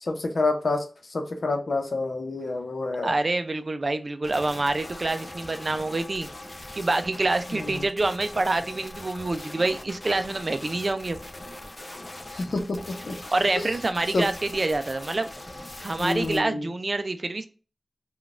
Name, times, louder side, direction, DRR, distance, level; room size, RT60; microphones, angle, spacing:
voice 1, 0.0-0.8 1.1-3.2 7.5-7.8 12.3-13.2 13.6-13.7 14.1-14.3 16.0-16.7, left 2 dB, 70° left, 4 dB, 0.7 m, -28 dB
voice 2, 3.0-6.3 6.7-11.2 13.3-15.3 15.8-17.5, right 2 dB, 50° right, 10 dB, 0.4 m, -26 dB
sound 1, 4.2-16.4, left 1 dB, 35° left, 0.5 m, -41 dB
3.8 x 2.3 x 2.3 m, 0.36 s
wide cardioid pair, 55°, 0 cm